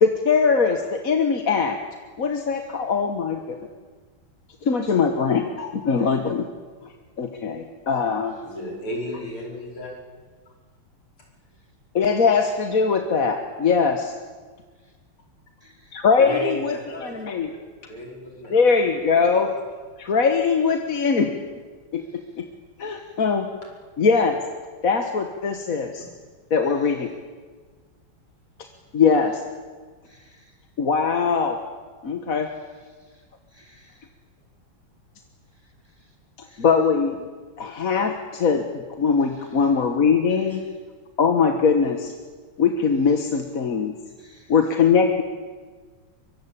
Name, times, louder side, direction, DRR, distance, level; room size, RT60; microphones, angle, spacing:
voice 1, 0.0-1.8 2.2-3.6 4.6-6.4 7.2-8.3 11.9-14.1 15.9-17.5 18.5-19.5 20.0-21.3 21.9-22.0 22.4-22.5 22.8-23.5 24.0-24.4 24.8-26.0 26.5-27.1 28.9-29.4 30.8-31.6 32.0-32.5 36.6-37.2 37.6-40.6 41.2-42.1 42.6-43.9 44.5-45.2, left 5 dB, 45° left, 5 dB, 1.7 m, -21 dB
voice 2, 8.4-9.9 16.2-18.9 19.3-19.5 23.6-23.7 26.0-26.1, equal, 70° left, -1 dB, 6.0 m, -34 dB
voice 3, 22.8-23.1 30.1-30.5 33.0-33.1 33.5-34.0 36.0-36.1 36.4-36.7 44.2-44.5, left 1 dB, 10° right, 3 dB, 4.3 m, -57 dB
24.0 x 23.5 x 8.7 m, 1.4 s
omnidirectional pair, 2.4 m